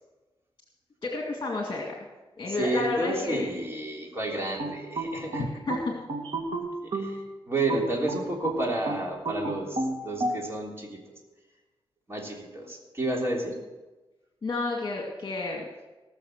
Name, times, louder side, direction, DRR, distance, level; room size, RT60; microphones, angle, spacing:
voice 1, 1.0-1.9 2.4-3.4 5.4-5.9 14.4-15.6, left 3 dB, 45° left, -1 dB, 2.2 m, -30 dB
voice 2, 2.5-5.5 6.8-11.2 12.1-13.6, right 2 dB, 25° right, -1 dB, 3.5 m, -31 dB
sound 1, 4.6-7.2 7.7-10.4, right 2 dB, 80° right, 2.3 m, -31 dB
19.0 x 6.6 x 6.6 m, 1.2 s
wide cardioid pair, 110°, 9 cm